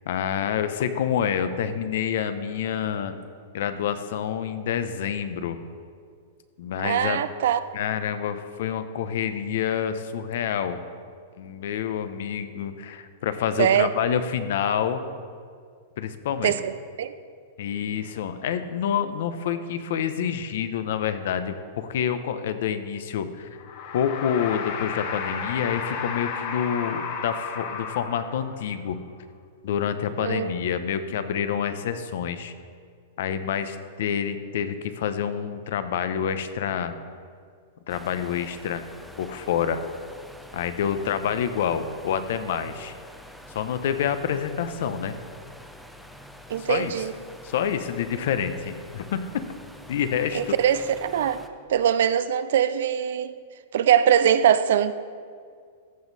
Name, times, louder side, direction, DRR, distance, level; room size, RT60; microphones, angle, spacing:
voice 1, 0.1-3.2 3.5-5.6 6.6-7.2 7.7-10.8 11.4-15.0 16.0-16.5 17.6-23.5 23.9-29.0 29.6-32.5 33.2-36.9 37.9-38.8 39.2-39.8 40.5-42.9 43.5-45.2 46.6-46.9 47.4-49.2 49.9-50.6, left 8 dB, 70° left, 10 dB, 0.8 m, -27 dB
voice 2, 6.8-7.6 13.6-13.9 16.4-16.7 17.0-17.1 30.2-30.5 46.5-47.1 50.3-51.4 51.7-53.3 53.7-54.9, right 9 dB, 75° right, 13 dB, 0.5 m, -22 dB
sound 1, 23.6-28.6, left 6 dB, 55° left, 1.3 m, -33 dB
sound 2, 37.9-51.5, equal, ahead, 0.6 m, -46 dB
14.0 x 7.2 x 4.1 m, 2.1 s
hypercardioid pair, 140°, 0 cm